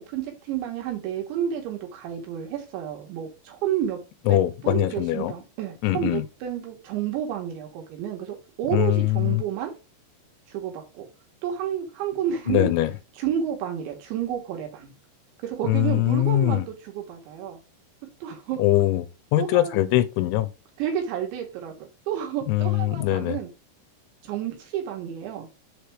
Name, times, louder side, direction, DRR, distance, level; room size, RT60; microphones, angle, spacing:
voice 1, 0.1-4.0 4.3-4.4 4.6-9.7 10.5-11.1 11.4-12.7 13.2-14.9 15.4-17.6 18.2-18.6 19.4-19.8 20.8-23.5 24.2-25.5, right 9 dB, 75° right, 3.5 m, -30 dB
voice 2, 4.3-5.3 5.8-6.2 8.7-9.4 12.5-12.9 15.7-16.6 18.6-19.1 19.3-20.5 22.5-23.4, left 15 dB, 90° left, 3.0 m, -22 dB
7.3 x 3.4 x 4.6 m
omnidirectional pair, 5.4 m